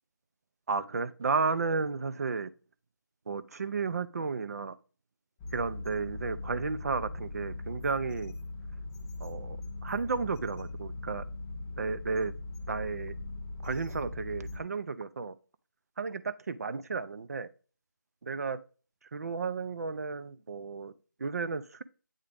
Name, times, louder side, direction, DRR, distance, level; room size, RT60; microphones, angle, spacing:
voice 1, 0.7-2.5 3.3-4.7 5.5-8.3 9.2-9.6 9.8-11.2 11.8-12.3 12.7-13.1 13.6-15.3 16.0-17.5 18.2-18.6 19.1-20.9 21.2-21.8, right 4 dB, 50° right, 0.5 m, -33 dB
sound 1, 5.4-14.6, left 2 dB, 10° left, 0.5 m, -40 dB
8.8 x 3.7 x 3.4 m
figure-of-eight pair, 165°, 11 cm